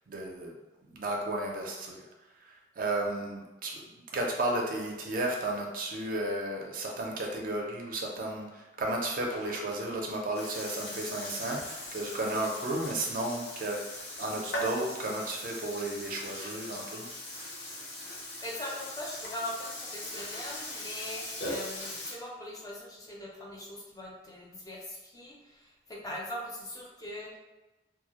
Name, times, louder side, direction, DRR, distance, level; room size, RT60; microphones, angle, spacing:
voice 1, 0.1-0.6 0.9-2.1 2.4-17.1, right 1 dB, 50° right, 0 dB, 0.4 m, -33 dB
Burping eructation, 9.0-22.1, left 1 dB, 90° left, 0.7 m, -40 dB
voice 2, 18.4-27.4, left 1 dB, 20° left, -3 dB, 0.4 m, -41 dB
2.2 x 2.0 x 2.9 m, 1.1 s
head